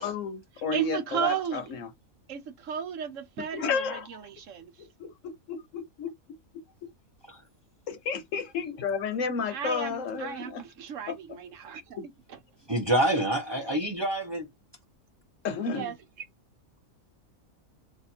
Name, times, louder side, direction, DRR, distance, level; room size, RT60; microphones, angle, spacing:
voice 1, 0.0-1.9 3.5-4.2 4.8-5.1 5.5-6.1 6.8-6.9 7.9-10.6 11.1-11.2 15.4-15.9, left 5 dB, 70° left, 1.1 m, -32 dB
voice 2, 0.7-1.7 2.3-4.7 9.5-12.0 12.3-12.4 15.7-15.9, right 8 dB, 70° right, 1.0 m, -34 dB
voice 3, 12.7-14.5, right 1 dB, 25° right, 0.6 m, -27 dB
2.6 x 2.5 x 4.2 m
omnidirectional pair, 1.4 m